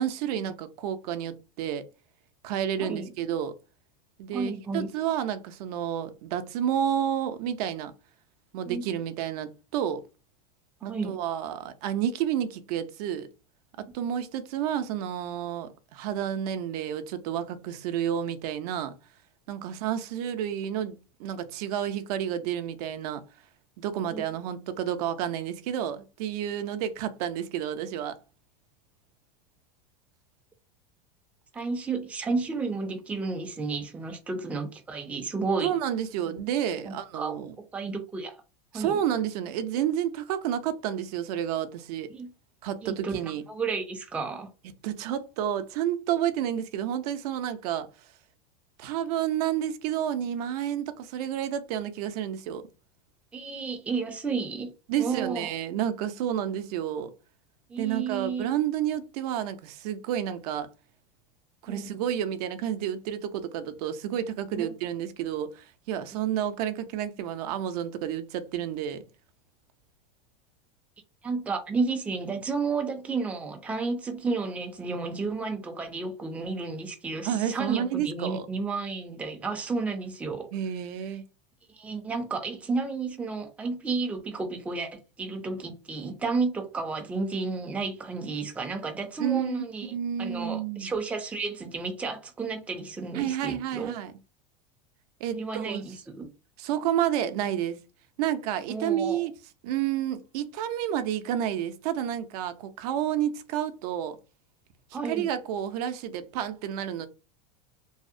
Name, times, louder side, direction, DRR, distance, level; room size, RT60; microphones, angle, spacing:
voice 1, 0.0-1.8 2.4-3.5 4.2-7.9 8.5-10.0 10.8-13.3 13.8-18.9 19.5-23.2 23.8-28.2 35.6-37.5 38.7-42.1 42.6-43.4 44.8-47.9 48.8-52.6 54.9-57.1 57.8-60.7 61.6-69.1 77.2-78.5 80.5-81.2 89.2-89.6 89.9-90.9 93.1-94.1 95.2-95.8 96.6-97.8 98.2-99.3 99.6-104.2 105.0-107.1, right 10 dB, 70° right, 0.4 m, -30 dB
voice 2, 2.8-3.1 4.3-4.9 8.7-8.8 10.9-11.1 24.1-24.2 31.5-35.8 36.3-36.4 36.9-37.4 37.7-38.4 38.7-39.0 42.1-42.3 42.8-43.2 43.5-44.5 53.3-54.7 55.0-55.5 57.7-58.4 61.7-61.9 64.5-64.7 71.2-80.5 81.7-89.9 90.2-94.0 95.3-96.3 98.7-99.3 104.9-105.3, right 4 dB, 5° right, 0.4 m, -32 dB
2.7 x 2.0 x 2.4 m
supercardioid pair, 125°, 21 cm